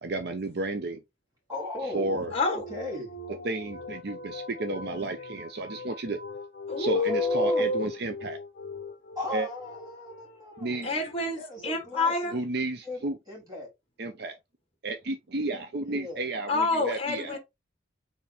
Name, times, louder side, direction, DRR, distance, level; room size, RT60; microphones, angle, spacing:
voice 1, 0.0-1.0 1.9-2.3 3.4-6.2 6.8-8.4 9.3-9.5 10.6-10.9 12.3-13.2 14.0-14.3 14.8-17.4, right 2 dB, 60° right, 0.6 m, -32 dB
voice 2, 1.5-3.2 6.9-7.7 9.1-11.0 11.4-12.4 12.8-13.7 15.8-16.2, left 1 dB, 20° right, 3.1 m, -37 dB
sound 1, 1.9-12.6, left 3 dB, 50° left, 0.6 m, -43 dB
voice 3, 2.3-2.6 6.7-7.9 10.8-12.4 16.5-17.4, left 2 dB, 30° left, 1.2 m, -27 dB
4.3 x 3.5 x 3.4 m
head